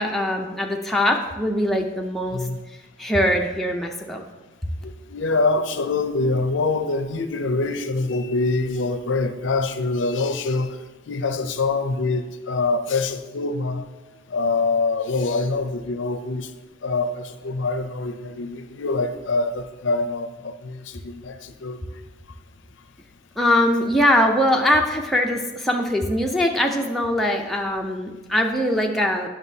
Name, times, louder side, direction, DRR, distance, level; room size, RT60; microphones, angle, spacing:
voice 1, 0.0-2.4 3.0-4.3 23.4-29.3, left 1 dB, ahead, 0 dB, 0.5 m, -22 dB
voice 2, 4.8-10.8 11.1-13.8 14.3-16.5 16.8-21.8, left 3 dB, 70° left, 9 dB, 0.5 m, -25 dB
9.4 x 6.1 x 2.7 m, 1.2 s
head